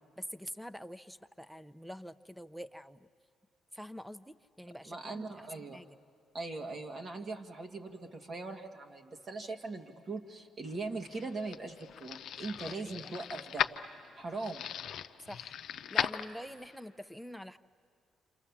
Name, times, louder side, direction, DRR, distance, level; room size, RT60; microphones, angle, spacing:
voice 1, 0.2-3.1 3.7-5.4 5.7-5.9 12.7-13.2 15.2-15.5 15.9-17.6, equal, ahead, 15 dB, 0.7 m, -46 dB
voice 2, 4.8-5.8 6.3-13.7 14.2-14.7, right 3 dB, 45° right, 3 dB, 1.8 m, -40 dB
sound 1, 10.8-16.8, left 9 dB, 70° left, 0.6 m, -38 dB
28.5 x 27.5 x 7.3 m, 2.3 s
cardioid pair, 90°, 0 cm